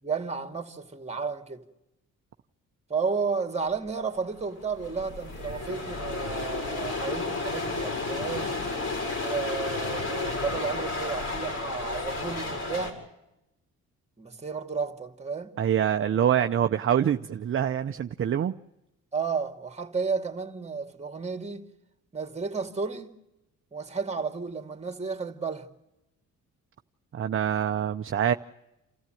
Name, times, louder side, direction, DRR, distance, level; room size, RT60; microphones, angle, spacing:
voice 1, 0.0-1.6 2.9-8.6 9.2-13.0 14.2-15.5 19.1-21.7 22.1-23.1 23.7-25.7, right 5 dB, 20° right, 2.4 m, -32 dB
sound 1, 4.1-4.2 4.4-12.9, left 3 dB, 55° left, 5.6 m, -32 dB
voice 2, 15.6-18.5 27.1-28.3, right 9 dB, 45° right, 0.8 m, -25 dB
28.5 x 14.5 x 9.1 m
cardioid pair, 90°, 30 cm